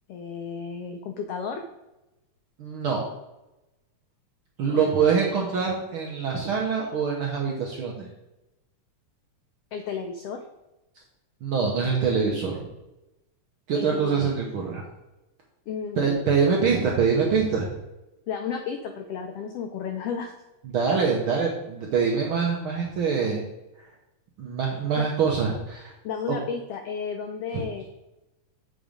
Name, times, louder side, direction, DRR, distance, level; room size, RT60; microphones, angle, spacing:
voice 1, 0.1-1.6 4.7-4.9 9.7-10.4 13.7-14.3 15.7-16.1 18.3-20.3 26.0-27.9, left 6 dB, 85° left, 5 dB, 1.3 m, -33 dB
voice 2, 2.6-3.0 4.6-8.1 11.4-12.7 13.7-14.8 16.0-17.7 20.6-23.4 24.4-25.9, right 5 dB, 70° right, -2 dB, 1.3 m, -24 dB
7.7 x 3.9 x 5.0 m, 0.98 s
omnidirectional pair, 3.4 m